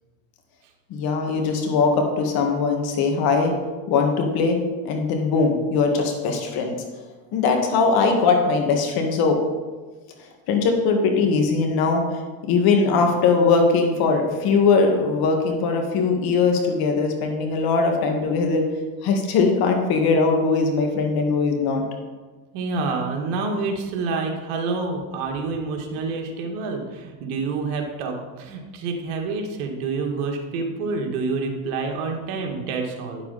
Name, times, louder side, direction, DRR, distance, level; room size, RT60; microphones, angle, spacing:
voice 1, 0.9-3.5 3.9-4.6 4.8-6.8 7.3-9.4 10.5-12.0 12.4-18.7 19.0-21.8, left 4 dB, 55° left, 3 dB, 1.9 m, -20 dB
voice 2, 22.5-33.2, right 4 dB, 70° right, 2 dB, 1.8 m, -28 dB
9.5 x 7.1 x 4.2 m, 1.3 s
supercardioid pair, 110°, 43 cm